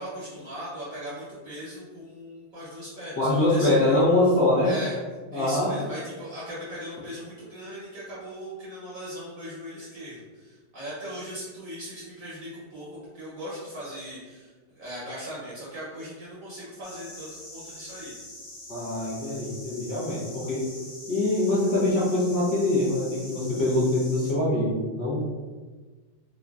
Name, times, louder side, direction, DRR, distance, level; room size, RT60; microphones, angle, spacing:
voice 1, 0.0-4.0 4.6-5.0 5.3-18.1, equal, 60° right, -8 dB, 0.9 m, -39 dB
voice 2, 3.2-4.7 5.3-5.7 18.7-20.7 21.1-25.2, left 2 dB, 60° left, -8 dB, 1.2 m, -24 dB
sound 1, 16.8-24.3, left 1 dB, 90° left, 1.7 m, -44 dB
3.7 x 2.1 x 2.3 m, 1.4 s
omnidirectional pair, 2.0 m